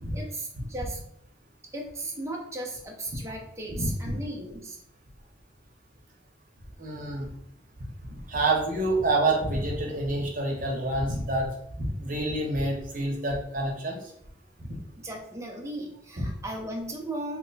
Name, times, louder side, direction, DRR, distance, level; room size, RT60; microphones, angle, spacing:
voice 1, 0.1-1.0 1.7-4.8 15.0-17.4, right 1 dB, 15° right, 0 dB, 0.6 m, -36 dB
voice 2, 3.7-4.1 6.8-7.3 8.0-11.5 11.8-14.0 16.2-16.3, right 2 dB, 45° right, -1 dB, 0.8 m, -28 dB
3.0 x 2.1 x 3.9 m, 0.72 s
head